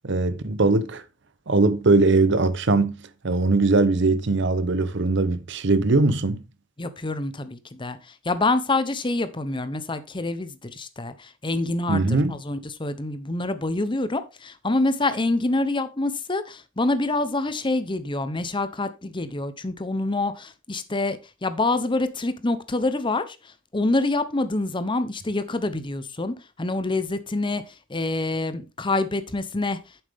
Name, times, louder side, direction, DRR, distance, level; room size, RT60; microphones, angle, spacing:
voice 1, 0.0-1.0 1.5-2.9 3.2-6.4 11.9-12.4, right 3 dB, 65° right, 0.8 m, -20 dB
voice 2, 6.8-29.8, left 2 dB, 25° left, 0.8 m, -26 dB
9.0 x 7.1 x 3.5 m
head